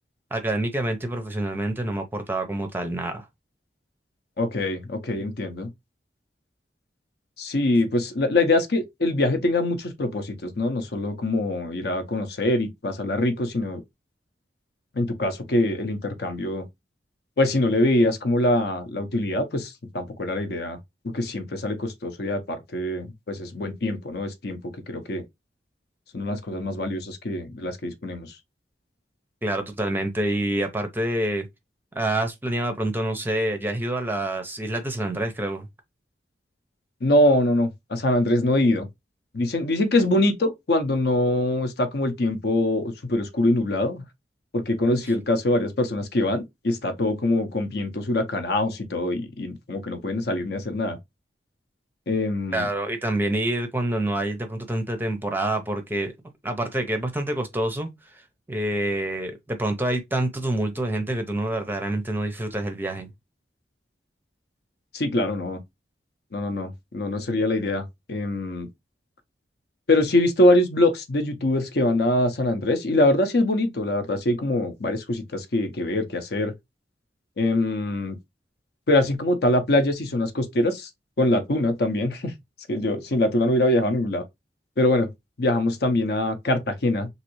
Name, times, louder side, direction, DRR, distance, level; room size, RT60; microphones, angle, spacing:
voice 1, 0.3-3.3 29.4-31.5 31.9-35.7 52.5-56.1 56.4-58.2 58.5-63.1, right 1 dB, 10° right, 0.5 m, -27 dB
voice 2, 4.4-5.7 7.4-13.8 14.9-16.6 17.4-20.8 21.1-24.6 24.9-25.2 26.1-28.3 37.0-38.9 39.3-44.0 44.5-51.0 52.1-52.7 64.9-65.6 66.3-68.7 69.9-76.5 77.4-78.2 78.9-80.9 81.2-82.3 82.7-84.2 84.8-85.1 85.4-87.1, left 1 dB, 60° left, 0.7 m, -23 dB
3.2 x 2.6 x 3.0 m
head